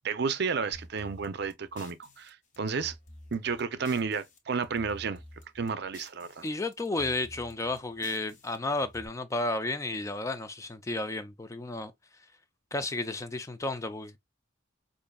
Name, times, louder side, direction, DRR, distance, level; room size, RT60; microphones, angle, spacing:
voice 1, 0.0-2.9 3.3-5.2 5.5-6.5, right 5 dB, 60° right, 0.5 m, -32 dB
sound 1, 0.7-4.4 4.6-6.5 6.7-9.1, left 1 dB, 40° left, 0.9 m, -51 dB
voice 2, 6.4-11.9 12.7-14.2, left 2 dB, 15° left, 0.3 m, -32 dB
5.1 x 2.6 x 2.2 m
head